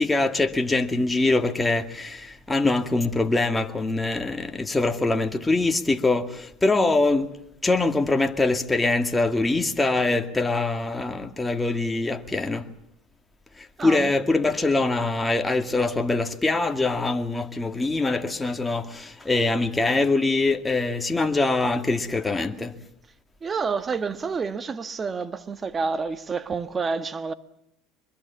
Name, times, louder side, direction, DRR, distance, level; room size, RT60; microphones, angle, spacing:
voice 1, 0.0-6.3 6.6-7.3 7.6-12.6 13.8-22.7, left 2 dB, 10° left, 2.1 m, -23 dB
voice 2, 13.8-14.1 23.4-27.3, right 5 dB, 25° right, 1.5 m, -29 dB
25.0 x 22.0 x 7.2 m
supercardioid pair, 100°, 0 cm